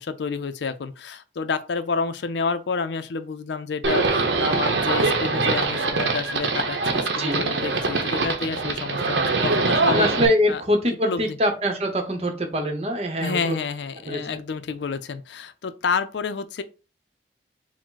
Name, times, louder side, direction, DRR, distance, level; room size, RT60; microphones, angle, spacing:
voice 1, 0.0-10.1 10.5-10.6 11.1-11.4 13.2-16.6, left 5 dB, 80° left, 0.4 m, -29 dB
Livestock farm animals working animals, 3.8-10.3, right 3 dB, 90° right, 0.7 m, -23 dB
voice 2, 6.9-7.4 9.9-13.6 14.1-14.2, equal, 35° right, 0.8 m, -24 dB
4.8 x 2.1 x 3.9 m
head